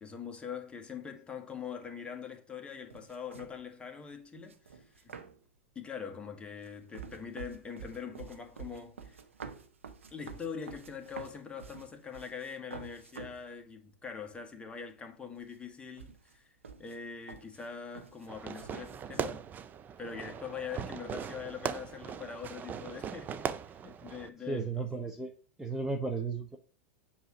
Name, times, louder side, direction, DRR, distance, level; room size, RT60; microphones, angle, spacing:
voice 1, 0.0-5.1 5.7-9.2 10.1-16.5 16.8-19.4 20.0-24.9, left 6 dB, 15° left, 1.4 m, -43 dB
sound 1, 2.7-3.7 4.5-5.6 6.3-13.5 14.0-14.1 14.4-15.1 15.4-19.3, right 6 dB, 80° right, 0.8 m, -49 dB
Fireworks, 18.3-24.3, right 8 dB, 25° right, 0.5 m, -39 dB
voice 2, 24.5-25.3 25.6-26.6, right 3 dB, 5° right, 0.9 m, -34 dB
7.8 x 2.8 x 5.9 m
hypercardioid pair, 95°, 7 cm